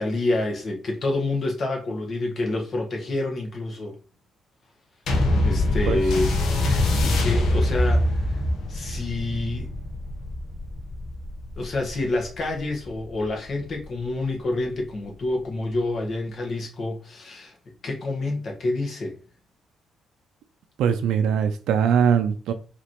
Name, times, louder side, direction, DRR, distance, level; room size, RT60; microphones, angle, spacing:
voice 1, 0.0-4.0 5.4-8.3 8.7-9.7 11.6-17.5 17.8-19.1, left 2 dB, 50° left, 1.3 m, -28 dB
sound 1, 5.1-13.8 14.6-14.7, left 1 dB, 75° left, 0.9 m, -24 dB
voice 2, 20.8-22.5, right 7 dB, 85° right, 0.4 m, -21 dB
5.0 x 3.0 x 3.0 m
cardioid pair, 90°, 0 cm